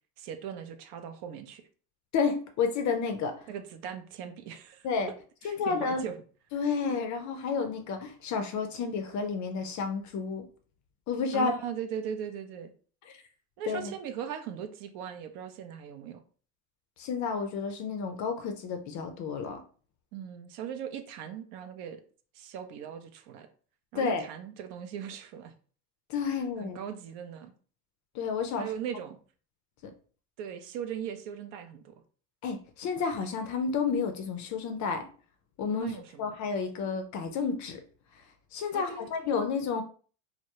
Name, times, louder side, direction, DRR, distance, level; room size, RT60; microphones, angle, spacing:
voice 1, 0.2-1.6 3.5-4.9 5.4-6.1 11.3-12.7 13.6-16.2 20.1-22.0 22.3-23.5 23.9-25.5 26.6-27.5 28.6-29.2 30.4-32.0 35.7-36.3 38.7-39.0, right 8 dB, 60° right, 8 dB, 0.5 m, -39 dB
voice 2, 2.1-3.3 4.8-5.1 5.4-6.0 6.5-10.4 11.1-11.5 13.7-13.9 17.0-19.6 23.9-24.2 26.1-26.8 28.1-28.7 29.8-29.9 32.4-35.1 35.6-37.8 38.5-39.8, left 5 dB, 40° left, 6 dB, 0.4 m, -31 dB
2.1 x 2.0 x 2.8 m, 0.41 s
hypercardioid pair, 90°, 48 cm